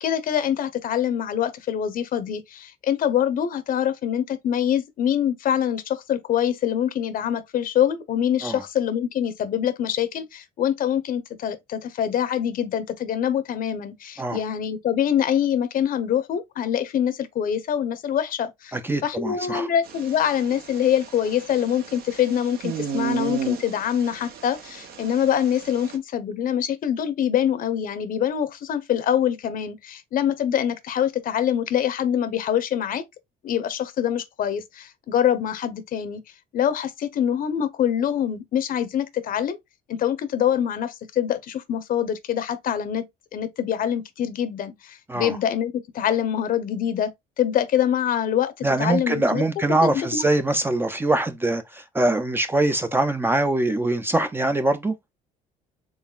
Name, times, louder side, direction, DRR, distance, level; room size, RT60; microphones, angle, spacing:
voice 1, 0.0-18.8 19.0-33.0 33.4-36.2 36.5-39.6 39.9-43.1 43.3-47.1 47.4-49.4 49.8-50.3, left 9 dB, 55° left, 0.7 m, -24 dB
voice 2, 18.7-19.7 45.1-45.4 48.6-54.9, right 2 dB, 15° right, 0.4 m, -23 dB
sound 1, 19.8-26.0, right 8 dB, 65° right, 0.9 m, -34 dB
3.9 x 3.5 x 2.3 m
cardioid pair, 110°, 17 cm